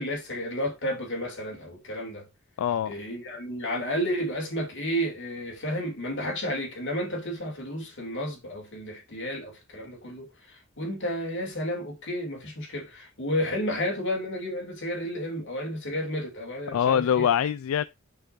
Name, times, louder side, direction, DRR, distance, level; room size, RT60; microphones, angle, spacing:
voice 1, 0.0-2.2 2.9-17.3, equal, 60° left, 2.8 m, -32 dB
voice 2, 2.6-2.9 16.7-17.8, left 8 dB, 90° left, 0.3 m, -24 dB
6.7 x 6.2 x 2.6 m
head